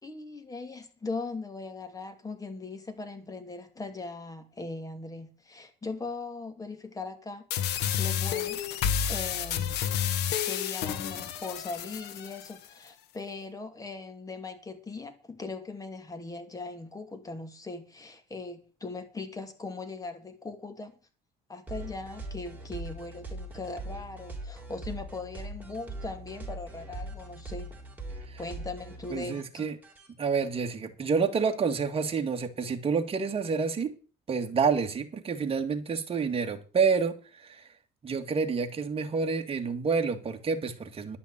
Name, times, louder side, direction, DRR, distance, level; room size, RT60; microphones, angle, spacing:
voice 1, 0.0-7.4 8.0-8.7 9.1-9.8 10.4-20.9 21.5-27.8 28.4-29.7, left 3 dB, 20° left, 2.4 m, -39 dB
sound 1, 7.5-12.5, left 9 dB, 85° left, 1.4 m, -30 dB
sound 2, 21.7-30.1, right 2 dB, 10° right, 4.0 m, -41 dB
voice 2, 29.1-29.8 30.2-33.9 34.3-37.7 38.0-41.2, right 5 dB, 35° right, 2.1 m, -28 dB
11.5 x 5.8 x 8.9 m
cardioid pair, 110°, 17 cm